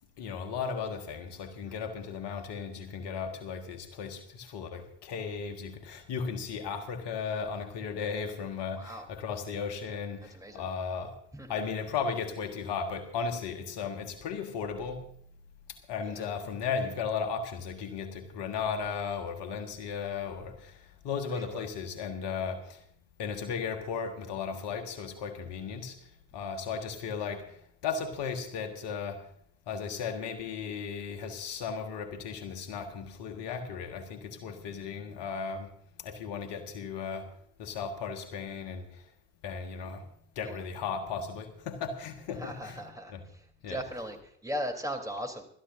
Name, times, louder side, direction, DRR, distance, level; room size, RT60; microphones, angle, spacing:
voice 1, 0.2-11.2 11.5-15.1 15.7-22.8 23.2-29.2 29.7-35.7 36.0-37.3 37.6-39.0 39.4-40.1 40.3-43.2 43.6-43.8, left 6 dB, 60° left, 1.7 m, -36 dB
voice 2, 8.7-9.1 10.3-10.6 11.3-11.5 21.3-21.6 40.4-40.5 42.3-43.1 43.7-44.2 44.4-45.4, equal, 5° right, 3.4 m, -37 dB
28.0 x 13.5 x 2.6 m
hypercardioid pair, 50°, 46 cm